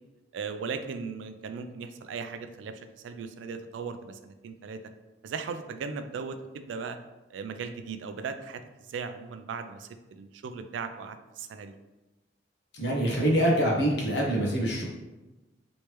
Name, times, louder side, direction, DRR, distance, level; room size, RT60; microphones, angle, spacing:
voice 1, 0.3-4.8 5.2-7.0 7.3-11.7, right 5 dB, 80° right, 9 dB, 0.3 m, -37 dB
voice 2, 12.7-14.8, right 1 dB, 65° left, -3 dB, 0.9 m, -25 dB
3.1 x 2.9 x 3.2 m, 1.1 s
head